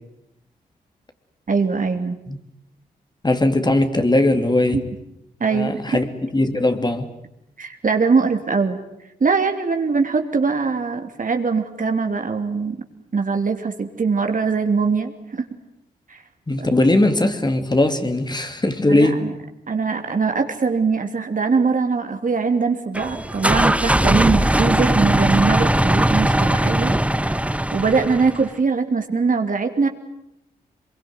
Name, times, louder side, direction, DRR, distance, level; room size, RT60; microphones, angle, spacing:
voice 1, 1.5-2.2 4.7-4.8 5.4-5.8 7.6-8.8 9.2-12.8 13.1-15.5 16.1-16.2 16.6-16.7 18.9-19.3 19.7-26.9 27.2-27.5 27.7-29.9, right 4 dB, 50° right, 6 dB, 3.0 m, -22 dB
voice 2, 3.2-4.8 5.5-6.1 6.3-7.1 16.5-19.3, left 2 dB, 25° left, 8 dB, 2.8 m, -19 dB
sound 1, 22.9-28.5, right 1 dB, 5° right, 1.0 m, -19 dB
24.0 x 22.5 x 9.6 m, 0.84 s
supercardioid pair, 40°, 17 cm